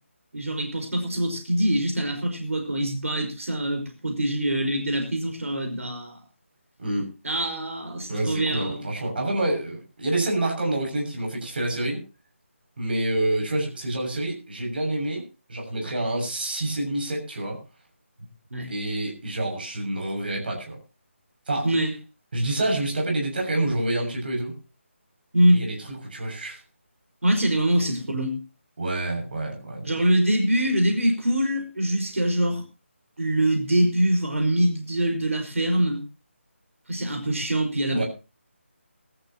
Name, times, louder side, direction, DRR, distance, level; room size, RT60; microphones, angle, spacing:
voice 1, 0.3-6.2 7.2-8.9 18.5-18.7 21.6-22.0 25.3-25.6 27.2-28.4 29.8-32.6 33.2-36.0 36.9-38.0, right 1 dB, 85° right, 3 dB, 5.2 m, -24 dB
voice 2, 8.1-12.0 12.8-17.6 18.7-20.7 21.5-21.7 22.3-24.6 25.5-26.6 28.8-30.0 37.9-38.0, right 1 dB, 45° right, 1 dB, 6.9 m, -27 dB
20.5 x 13.5 x 3.0 m, 0.31 s
figure-of-eight pair, 170°, 7 cm